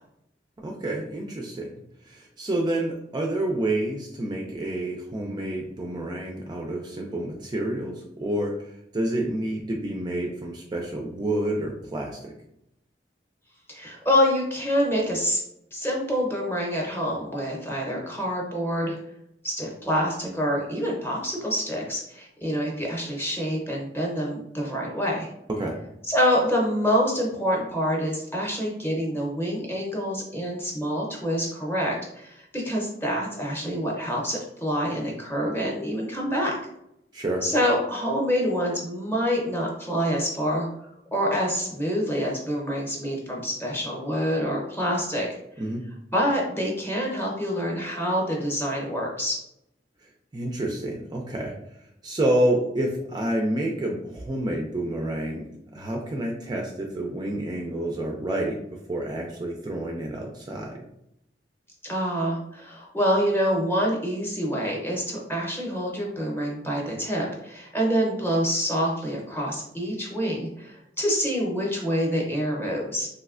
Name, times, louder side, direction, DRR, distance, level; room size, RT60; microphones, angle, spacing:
voice 1, 0.6-12.3 25.5-25.8 37.1-37.5 45.6-45.9 50.0-51.5 52.0-58.6 58.9-60.8, right 1 dB, 25° right, 0 dB, 0.3 m, -29 dB
voice 2, 13.7-15.4 15.7-19.0 19.4-25.3 26.1-36.6 37.4-40.7 41.1-45.3 46.1-49.4 61.8-73.1, equal, 15° left, -2 dB, 0.7 m, -26 dB
3.1 x 2.6 x 2.4 m, 0.78 s
head